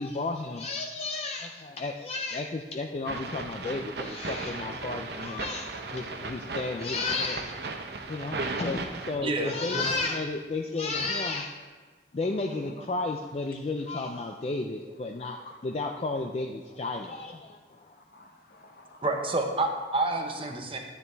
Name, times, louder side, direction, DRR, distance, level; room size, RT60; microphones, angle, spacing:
voice 1, 0.0-7.7 8.1-11.5 12.1-15.4 15.6-17.9, left 3 dB, 35° left, 3 dB, 0.4 m, -32 dB
sound 1, 3.1-9.2, right 3 dB, 60° right, 0.8 m, -36 dB
voice 2, 6.3-7.0 8.1-8.8 9.0-9.1 9.4-9.6 11.0-11.3 12.2-12.7 13.5-14.2 15.0-15.6 16.1-16.2 17.0-17.4 17.8-19.2 20.4-20.5, left 2 dB, 55° left, 3 dB, 1.1 m, -54 dB
voice 3, 9.2-9.8 10.9-11.0 12.6-12.9 14.8-15.0 16.7-16.8 19.0-20.8, right 2 dB, 30° right, 3 dB, 0.9 m, -30 dB
11.0 x 8.8 x 3.4 m, 1.4 s
head